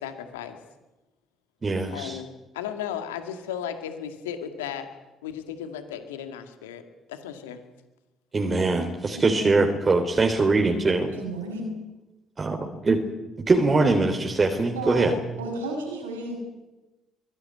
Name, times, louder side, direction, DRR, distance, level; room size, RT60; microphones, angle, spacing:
voice 1, 0.0-0.6 1.9-2.3 2.5-4.9 5.2-6.8 7.1-7.6, left 9 dB, 80° left, 8 dB, 2.0 m, -35 dB
voice 2, 1.6-2.2 8.3-11.1 12.4-13.0 13.5-15.1, right 3 dB, 35° right, 3 dB, 3.3 m, -22 dB
voice 3, 9.1-9.6 11.2-11.7 14.7-15.1 15.4-16.4, right 2 dB, 85° right, 2 dB, 6.9 m, -32 dB
23.0 x 17.5 x 9.7 m, 1.0 s
hypercardioid pair, 45°, 0 cm